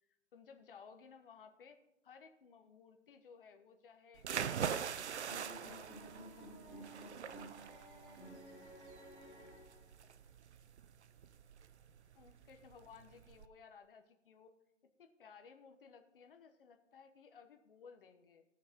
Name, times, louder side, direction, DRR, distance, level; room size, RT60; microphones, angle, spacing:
voice 1, 0.3-1.8 2.0-4.8 5.2-5.9 6.3-6.5 6.8-6.9 12.2-14.5 15.0-18.5, left 6 dB, 45° left, 6 dB, 1.1 m, -59 dB
sound 1, 4.2-13.5, right 7 dB, 60° right, 0.7 m, -43 dB
sound 2, 5.2-10.1, right 1 dB, 20° right, 2.3 m, -54 dB
17.0 x 6.4 x 3.7 m, 0.85 s
hypercardioid pair, 160°, 38 cm